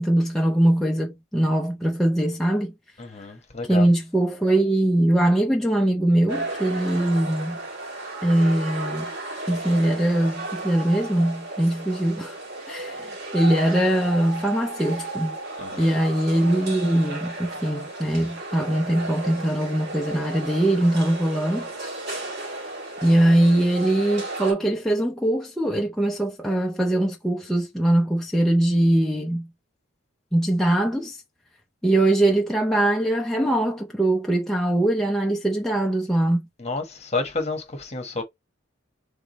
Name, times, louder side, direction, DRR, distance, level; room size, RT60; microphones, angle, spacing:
voice 1, 0.0-2.7 3.7-7.6 8.2-9.1 9.5-12.3 12.7-15.4 15.8-21.9 23.0-29.5 30.3-31.2 31.8-36.5, right 1 dB, ahead, 0.6 m, -22 dB
voice 2, 3.0-3.9 15.6-16.0 36.6-38.2, left 3 dB, 35° left, 1.3 m, -30 dB
sound 1, 6.3-24.5, right 2 dB, 55° right, 2.3 m, -34 dB
3.7 x 3.5 x 4.2 m
head